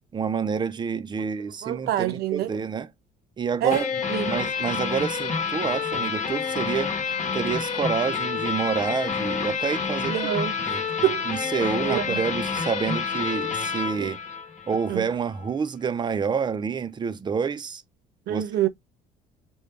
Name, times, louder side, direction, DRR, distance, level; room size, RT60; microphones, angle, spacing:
voice 1, 0.1-2.9 3.4-3.9 4.3-6.9 7.3-10.8 11.3-14.2 14.7-17.8 18.3-18.4, right 6 dB, 25° right, 0.5 m, -28 dB
voice 2, 1.6-2.5 3.6-4.4 10.1-11.2 11.8-12.2 14.0-14.1 14.9-15.1 18.3-18.7, right 12 dB, 75° right, 0.9 m, -26 dB
sound 1, 3.7-15.0, left 6 dB, 45° left, 1.0 m, -28 dB
3.8 x 2.3 x 3.3 m
cardioid pair, 110°, 17 cm